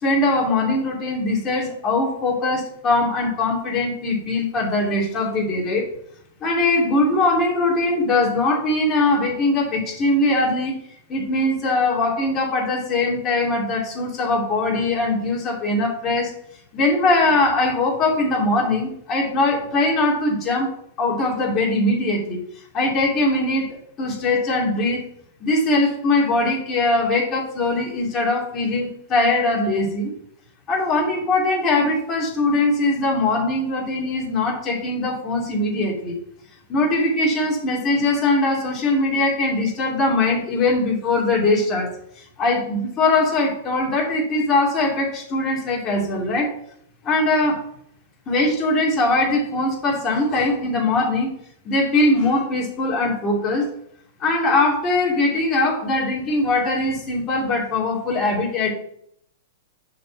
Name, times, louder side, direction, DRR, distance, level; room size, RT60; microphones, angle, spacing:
voice 1, 0.0-5.8 6.4-10.7 11.1-16.3 16.7-20.7 21.0-22.4 22.7-25.1 25.4-30.1 30.7-36.1 36.7-41.9 42.2-46.5 47.0-47.6 48.3-51.3 51.6-53.7 54.2-58.7, left 2 dB, 30° left, -2 dB, 2.8 m, -21 dB
6.4 x 4.4 x 5.9 m, 0.71 s
hypercardioid pair, 120°, 0 cm